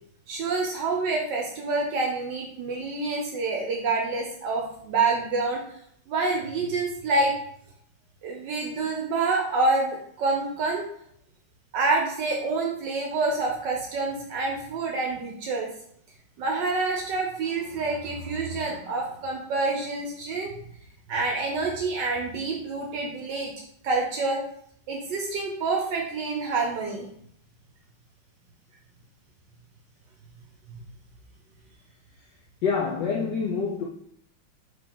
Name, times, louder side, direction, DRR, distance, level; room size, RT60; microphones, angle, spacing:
voice 1, 0.3-5.6 6.1-7.3 8.2-10.9 11.7-15.7 16.4-20.5 21.1-23.5 23.8-24.4 24.9-27.1, right 3 dB, 70° right, 1.1 m, -27 dB
voice 2, 32.6-33.8, left 5 dB, 75° left, 1.0 m, -26 dB
3.7 x 3.5 x 3.7 m
omnidirectional pair, 2.4 m